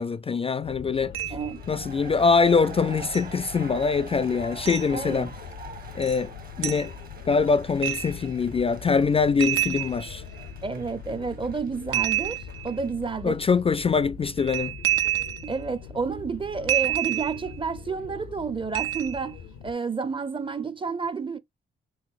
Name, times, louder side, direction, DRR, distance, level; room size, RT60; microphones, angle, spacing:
voice 1, 0.0-1.1 1.7-5.3 5.9-6.3 6.6-6.9 7.3-10.2 13.2-14.8, left 5 dB, 30° left, 0.3 m, -23 dB
sound 1, 0.6-19.7, left 8 dB, 85° left, 0.6 m, -42 dB
sound 2, 1.1-1.5 3.1-3.2 4.7-4.9 6.0-6.2 6.6-6.9 7.8-8.3 9.4-10.5 11.9-12.8 14.4-15.6 16.7-17.5 18.7-19.3, right 12 dB, 85° right, 0.5 m, -28 dB
voice 2, 1.3-1.6 4.9-5.3 10.6-13.4 15.4-19.4 19.6-21.4, right 5 dB, 25° right, 0.5 m, -30 dB
sound 3, 1.4-13.0, right 5 dB, 45° right, 1.2 m, -45 dB
4.0 x 2.8 x 2.4 m
supercardioid pair, 50°, 20 cm